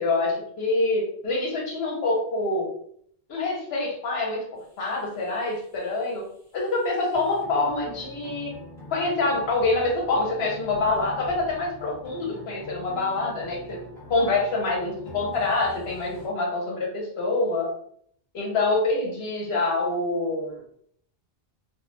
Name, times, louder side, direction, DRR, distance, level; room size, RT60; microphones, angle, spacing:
voice 1, 0.0-2.7 3.3-4.4 4.8-6.3 6.5-8.5 8.9-13.8 14.1-17.7 18.3-20.6, left 2 dB, 80° left, -1 dB, 1.0 m, -26 dB
sound 1, 4.6-16.3, left 1 dB, 20° left, 1.1 m, -44 dB
2.3 x 2.1 x 3.1 m, 0.65 s
omnidirectional pair, 1.0 m